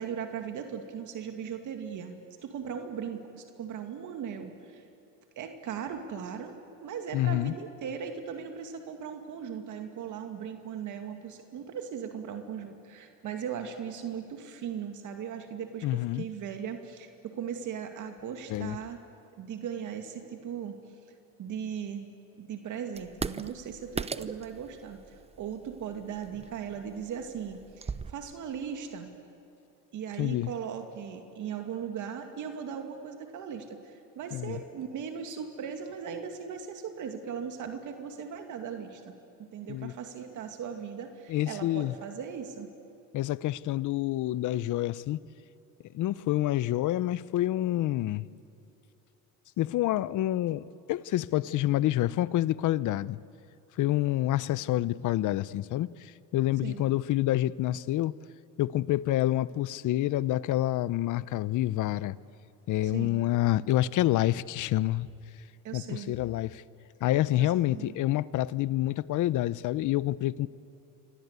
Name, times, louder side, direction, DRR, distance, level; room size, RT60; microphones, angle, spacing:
voice 1, 0.0-4.8 5.4-6.6 6.8-19.0 19.4-20.8 21.4-22.1 22.4-29.1 29.9-39.1 39.4-42.7 56.6-56.8 62.8-63.2 65.6-66.1 67.4-67.9, right 7 dB, 65° right, 5 dB, 2.4 m, -38 dB
voice 2, 7.1-7.5 15.8-16.2 18.5-18.8 30.2-30.5 34.3-34.6 39.7-39.9 41.3-41.9 43.1-45.2 45.9-48.3 49.6-53.2 53.8-58.1 58.6-62.2 62.7-65.1 65.7-66.6 67.0-70.5, left 14 dB, 65° left, 19 dB, 0.8 m, -28 dB
sound 1, 23.0-28.1, right 5 dB, 20° right, 0.7 m, -39 dB
29.0 x 25.0 x 8.2 m, 2.7 s
cardioid pair, 105°, 33 cm